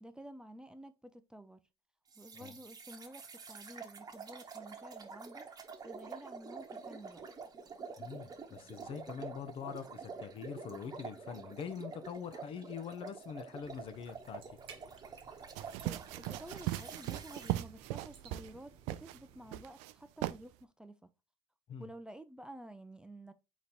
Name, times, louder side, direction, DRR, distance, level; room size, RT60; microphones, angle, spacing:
voice 1, 0.0-1.6 2.2-5.5 5.8-7.3 15.8-21.0 21.8-23.3, right 1 dB, 5° right, 0.5 m, -51 dB
sound 1, 2.1-17.5, right 5 dB, 35° right, 1.0 m, -48 dB
voice 2, 8.0-14.4 21.7-21.9, left 7 dB, 50° left, 0.7 m, -44 dB
sound 2, 13.6-19.6, right 7 dB, 55° right, 1.1 m, -58 dB
sound 3, 15.6-18.6 18.9-19.2 19.5-19.9 20.2-20.4, right 16 dB, 75° right, 0.4 m, -38 dB
3.9 x 3.1 x 4.1 m
supercardioid pair, 85°, 12 cm